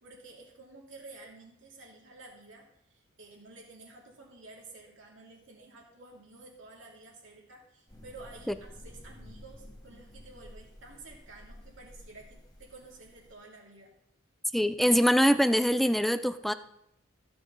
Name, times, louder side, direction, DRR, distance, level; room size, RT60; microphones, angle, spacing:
voice 1, 0.0-13.9, right 3 dB, 70° right, 2.7 m, -51 dB
sound 1, 7.9-13.3, equal, 20° left, 1.6 m, -51 dB
voice 2, 14.5-16.5, equal, ahead, 0.4 m, -23 dB
14.5 x 6.9 x 3.9 m
head